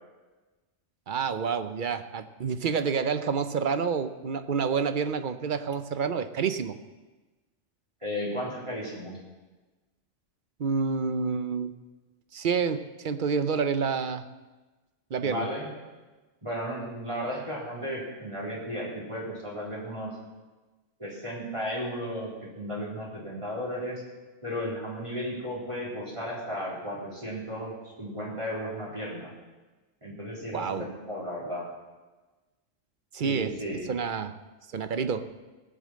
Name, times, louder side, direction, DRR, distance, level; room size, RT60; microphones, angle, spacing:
voice 1, 1.1-6.8 10.6-11.7 12.3-14.3 15.1-15.5 30.5-30.9 33.1-34.3 34.7-35.3, right 6 dB, 50° right, 10 dB, 0.8 m, -28 dB
voice 2, 8.0-9.2 15.2-15.7 16.4-20.1 21.0-22.3 22.6-24.0 24.4-29.3 30.0-31.7 33.2-33.8, equal, 25° right, -7 dB, 4.0 m, -34 dB
17.5 x 7.5 x 7.5 m, 1.2 s
omnidirectional pair, 1.2 m